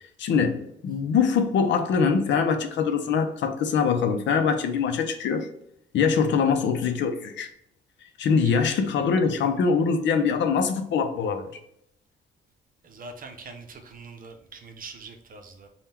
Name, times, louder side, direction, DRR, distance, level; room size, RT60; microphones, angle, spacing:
voice 1, 0.2-5.5 5.9-7.5 8.2-11.5, left 6 dB, 65° left, 0.6 m, -23 dB
voice 2, 8.2-8.6 12.8-15.7, right 3 dB, 45° right, 0.7 m, -43 dB
3.6 x 2.3 x 4.3 m
cardioid pair, 90°, 20 cm